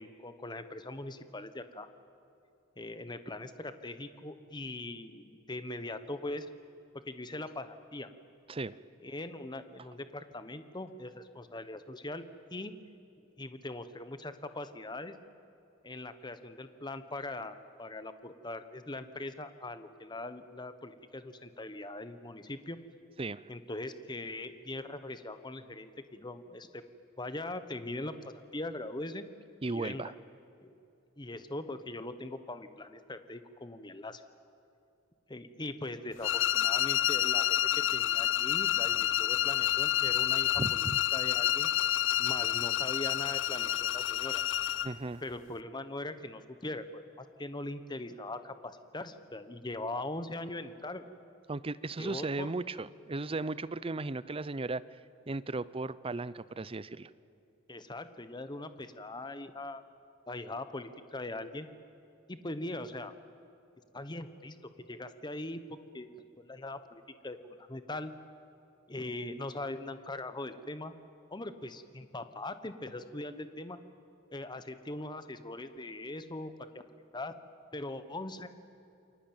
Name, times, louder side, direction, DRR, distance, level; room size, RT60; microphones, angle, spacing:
voice 1, 0.0-1.9 2.8-6.5 7.1-8.1 9.0-12.2 12.5-12.7 13.4-15.1 15.8-22.8 23.5-26.8 27.2-29.2 29.7-30.1 30.6-30.7 31.2-34.2 35.3-37.6 37.9-41.7 42.2-44.4 45.2-51.1 52.0-52.5 57.7-59.8 60.3-61.7 62.3-63.1 63.9-64.6 64.9-66.1 66.4-68.1 68.9-70.9 71.3-73.8 74.3-76.5 77.1-77.3 77.7-78.5, left 2 dB, 20° left, 11 dB, 1.1 m, -41 dB
voice 2, 23.2-23.5 29.6-30.1 40.6-41.0 44.8-45.2 51.5-54.8 55.3-57.1, right 3 dB, 25° right, 17 dB, 0.6 m, -36 dB
sound 1, 36.2-45.0, left 12 dB, 65° left, 0.6 m, -29 dB
28.5 x 23.0 x 8.9 m, 2.7 s
head